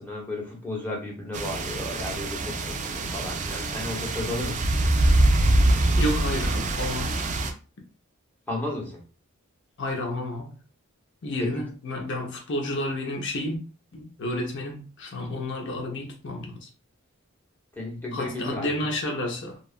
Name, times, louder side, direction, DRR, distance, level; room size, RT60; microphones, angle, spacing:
voice 1, 0.0-4.7 8.5-9.0 11.4-11.6 17.7-18.8, left 2 dB, 10° left, 0.8 m, -34 dB
sound 1, 1.3-7.5, right 1 dB, 35° right, 0.3 m, -24 dB
voice 2, 6.0-7.2 9.8-10.5 11.2-13.6 13.9-16.7 18.1-19.7, left 1 dB, 60° left, 0.6 m, -31 dB
2.8 x 2.3 x 2.4 m
head